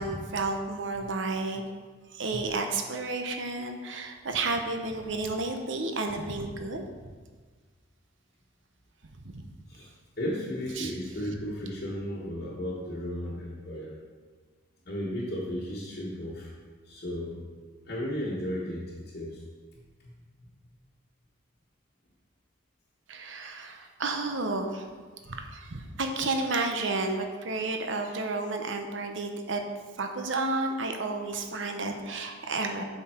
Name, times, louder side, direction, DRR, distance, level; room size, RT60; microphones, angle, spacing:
voice 1, 0.0-1.6 2.1-6.9 9.2-9.4 10.8-10.9 23.1-24.8 25.3-29.6 30.0-32.8, right 3 dB, 65° right, 4 dB, 0.8 m, -31 dB
voice 2, 10.2-14.0 14.9-16.5 16.9-17.4 17.9-19.4 20.0-20.1 26.4-26.5, equal, 50° left, -8 dB, 1.3 m, -34 dB
7.7 x 5.8 x 4.4 m, 1.5 s
head